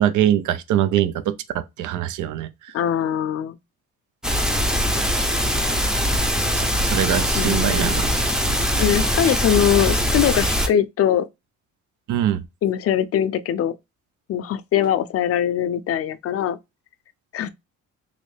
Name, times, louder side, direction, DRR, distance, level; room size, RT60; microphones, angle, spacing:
voice 1, 0.0-2.5 6.5-8.1 8.5-8.6 12.1-12.4, right 11 dB, 80° right, 0.5 m, -23 dB
voice 2, 2.7-3.6 7.4-8.0 8.8-11.3 12.6-13.7 14.3-16.6 17.3-17.5, left 10 dB, 50° left, 0.5 m, -22 dB
sound 1, 4.2-10.7, equal, ahead, 0.6 m, -22 dB
3.1 x 2.6 x 3.1 m
cardioid pair, 90°, 30 cm